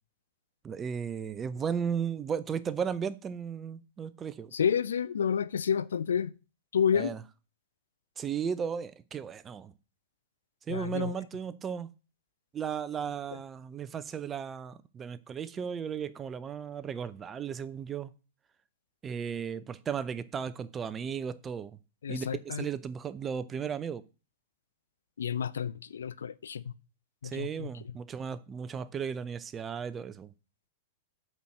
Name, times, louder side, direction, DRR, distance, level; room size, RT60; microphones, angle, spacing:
voice 1, 0.6-4.5 6.9-7.2 8.2-9.7 10.7-11.9 12.5-18.1 19.0-21.8 22.1-24.0 27.2-30.3, right 7 dB, 20° right, 0.6 m, -35 dB
voice 2, 4.5-6.3 6.7-7.1 10.7-11.1 22.0-22.7 25.2-26.6 27.2-27.7, left 7 dB, 70° left, 0.5 m, -30 dB
8.2 x 4.4 x 6.3 m
figure-of-eight pair, 100°, 0 cm